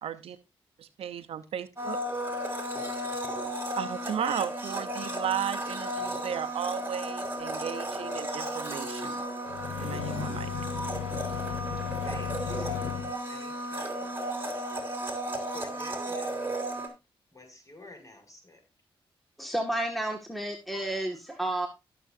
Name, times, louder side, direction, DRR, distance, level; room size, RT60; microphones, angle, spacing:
voice 1, 0.0-0.4 0.8-2.0 3.8-9.3 9.8-10.5, right 9 dB, 80° right, 11 dB, 0.8 m, -35 dB
Domestic sounds home sounds, 1.8-16.9, equal, 20° right, 3.7 m, -34 dB
sound 1, 9.5-13.1, left 10 dB, 85° left, 0.9 m, -36 dB
voice 2, 11.8-14.2 15.5-16.4 17.3-18.6, left 1 dB, 35° left, 3 dB, 6.3 m, -49 dB
voice 3, 19.4-21.7, right 1 dB, ahead, 4 dB, 1.8 m, -31 dB
17.0 x 6.9 x 2.7 m, 0.24 s
cardioid pair, 55°, 10 cm